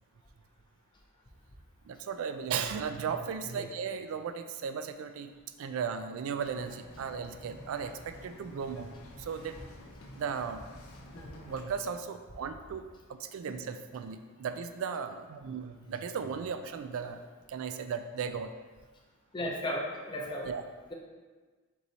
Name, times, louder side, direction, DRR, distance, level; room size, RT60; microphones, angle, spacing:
voice 1, 1.8-5.3 5.6-8.9 9.2-9.6 10.2-10.6 11.5-12.9 13.2-17.2 17.5-18.5 20.4-20.6, right 6 dB, 65° right, 9 dB, 0.3 m, -36 dB
Bird vocalization bird call bird song, 6.4-11.6, left 1 dB, 70° left, 0.6 m, -50 dB
voice 2, 19.3-20.5, left 1 dB, 20° left, -1 dB, 0.5 m, -35 dB
4.6 x 3.9 x 2.8 m, 1.4 s
head